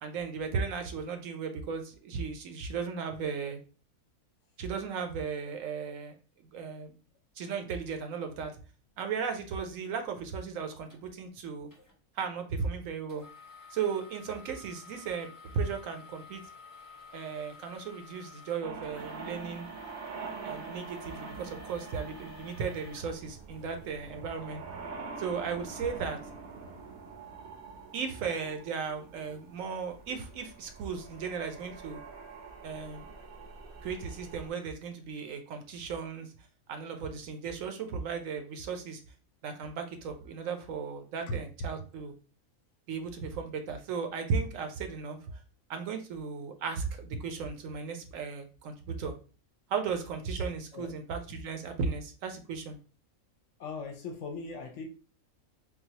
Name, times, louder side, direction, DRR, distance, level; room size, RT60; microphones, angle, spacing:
voice 1, 0.0-3.6 4.6-6.1 6.4-6.9 7.4-8.6 9.0-11.7 12.2-13.2 13.7-15.3 15.5-16.4 17.1-19.7 20.4-24.6 25.2-26.2 27.9-32.0 32.6-33.1 33.8-36.3 36.7-39.0 39.4-42.1 42.9-45.2 45.7-49.1 49.7-52.8, right 5 dB, 70° right, 6 dB, 0.9 m, -36 dB
sound 1, 10.9-11.0 11.7-11.9 13.1-23.9 24.5-24.6 25.2-25.3, left 3 dB, 15° left, 1.1 m, -52 dB
sound 2, 18.6-34.5, right 4 dB, 90° right, 1.2 m, -45 dB
voice 2, 53.6-54.9, left 3 dB, 65° left, 4 dB, 0.8 m, -38 dB
3.9 x 2.3 x 2.7 m, 0.36 s
omnidirectional pair, 1.5 m